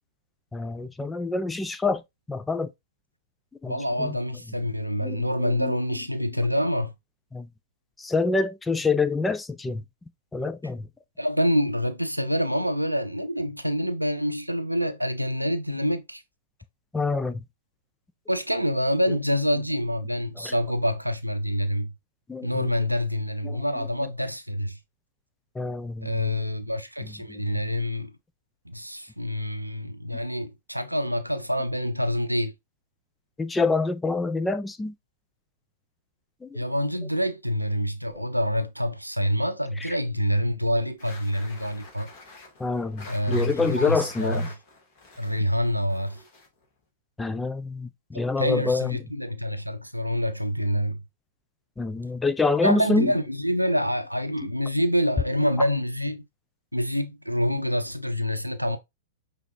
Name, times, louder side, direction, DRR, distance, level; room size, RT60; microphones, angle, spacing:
voice 1, 0.5-2.0 2.3-2.7 3.6-4.2 5.0-5.7 7.3-7.5 8.0-9.8 10.3-10.9 16.9-17.4 19.1-19.2 20.4-20.5 22.3-22.7 23.4-23.6 25.6-26.3 27.3-27.6 33.4-34.9 36.4-36.6 38.1-38.2 39.8-40.0 42.6-44.5 47.2-49.0 51.8-53.1, left 3 dB, 10° left, 0.4 m, -27 dB
voice 2, 3.6-6.9 11.2-16.2 18.3-21.9 22.4-24.8 26.0-28.1 28.7-32.5 36.5-42.1 43.1-44.5 45.2-46.2 48.4-51.0 52.6-56.2 56.7-58.8, equal, 90° right, 0.6 m, -26 dB
sound 1, 41.0-46.6, left 3 dB, 40° left, 2.1 m, -46 dB
5.8 x 3.3 x 2.6 m
figure-of-eight pair, 105°, 0 cm